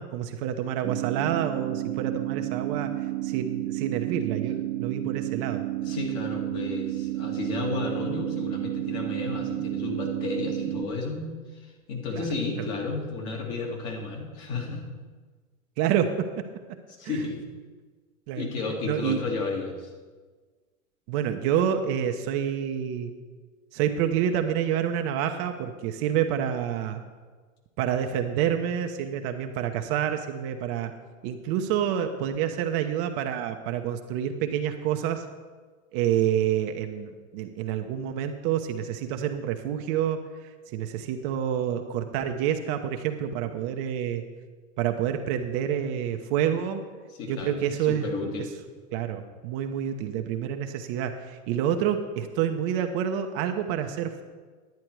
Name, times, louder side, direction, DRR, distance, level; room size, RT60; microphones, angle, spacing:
voice 1, 0.0-5.6 12.1-12.2 12.6-12.7 15.8-16.3 17.0-17.2 18.3-18.4 18.8-19.2 21.1-23.1 23.7-27.0 27.8-30.9 31.2-35.2 35.9-44.2 44.8-46.8 47.3-48.3 48.9-54.2, right 9 dB, 40° right, 6 dB, 0.8 m, -28 dB
sound 1, 0.8-10.8, right 16 dB, 25° right, 0.4 m, -31 dB
voice 2, 5.8-11.3 11.5-14.8 17.0-17.4 18.3-19.9 47.1-48.5, left 3 dB, 45° left, 0 dB, 2.4 m, -32 dB
10.5 x 9.6 x 4.7 m, 1.4 s
hypercardioid pair, 115°, 42 cm